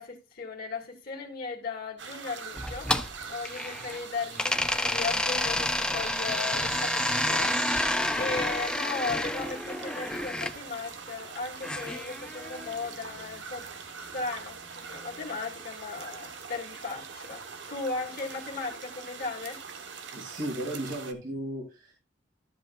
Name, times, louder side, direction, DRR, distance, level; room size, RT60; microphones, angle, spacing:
voice 1, 0.0-13.7 14.0-19.6, left 4 dB, 55° left, 1.9 m, -37 dB
sound 1, 2.0-21.1, right 6 dB, 90° right, 1.0 m, -42 dB
sound 2, 2.6-4.0 4.4-10.5 11.6-12.8, left 1 dB, 5° left, 0.5 m, -29 dB
voice 2, 20.1-21.9, right 1 dB, 50° right, 2.5 m, -35 dB
12.5 x 7.6 x 2.3 m
head